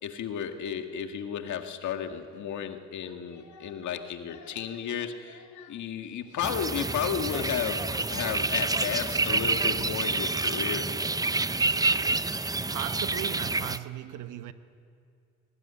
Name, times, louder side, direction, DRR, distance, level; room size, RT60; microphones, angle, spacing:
voice 1, 0.0-10.9 11.2-11.4, left 8 dB, 75° left, 1.9 m, -33 dB
sound 1, 6.4-13.8, right 3 dB, 10° right, 0.6 m, -28 dB
voice 2, 12.7-14.5, right 12 dB, 90° right, 1.1 m, -37 dB
22.5 x 18.5 x 9.9 m
cardioid pair, 90°, 30 cm